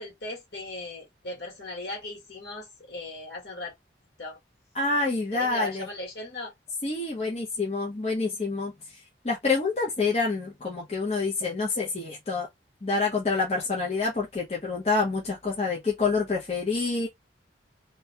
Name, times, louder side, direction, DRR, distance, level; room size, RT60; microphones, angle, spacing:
voice 1, 0.0-3.7 4.2-4.4 5.3-6.5, left 2 dB, 70° left, 1.6 m, -37 dB
voice 2, 4.7-5.9 6.8-8.7 9.2-12.5 12.8-17.1, left 3 dB, 35° left, 0.7 m, -27 dB
2.9 x 2.1 x 2.8 m
head